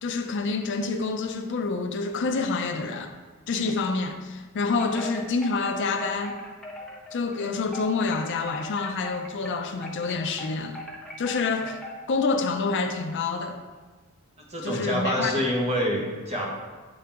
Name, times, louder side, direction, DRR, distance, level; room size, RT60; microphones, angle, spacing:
voice 1, 0.0-3.1 3.5-6.4 7.1-10.8 11.2-11.8 12.1-13.6 14.6-15.3, left 4 dB, 55° left, 0.4 m, -27 dB
Wind chime, 4.8-12.1, left 1 dB, ahead, 0.6 m, -40 dB
voice 2, 14.5-16.5, equal, 30° right, 1.2 m, -26 dB
8.8 x 3.7 x 3.5 m
head